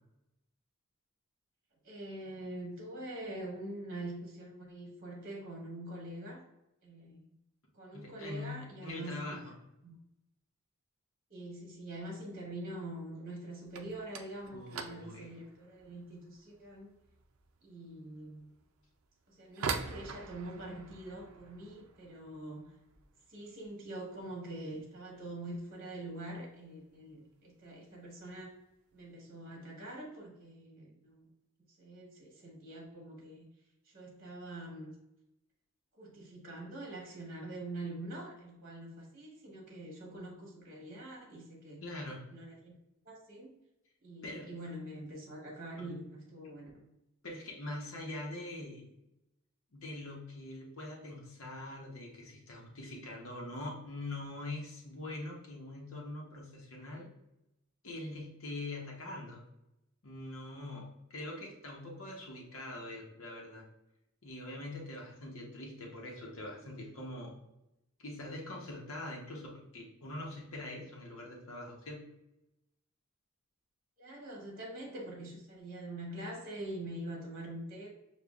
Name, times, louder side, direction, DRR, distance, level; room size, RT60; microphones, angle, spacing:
voice 1, 1.8-6.4 6.8-7.3 7.7-9.4 9.8-9.9 11.3-16.9 17.6-18.5 19.3-22.7 23.3-28.5 28.9-31.3 31.8-33.4 33.9-34.9 36.0-41.8 42.3-42.7 43.0-43.5 44.0-46.7 74.0-77.9, right 1 dB, 40° right, -1 dB, 1.2 m, -44 dB
voice 2, 7.9-9.5 14.5-15.3 41.8-42.2 44.2-44.5 45.8-45.9 47.2-48.9 49.7-57.1 57.8-59.4 60.0-63.6 64.2-67.4 68.0-72.0, left 2 dB, 75° left, -1 dB, 0.9 m, -43 dB
sound 1, 13.6-24.4 24.7-25.3 25.5-25.8 26.2-26.3 27.0-27.1 28.0-28.2 28.5-29.0, right 5 dB, 80° right, 0.5 m, -45 dB
6.8 x 2.4 x 2.3 m, 0.90 s
head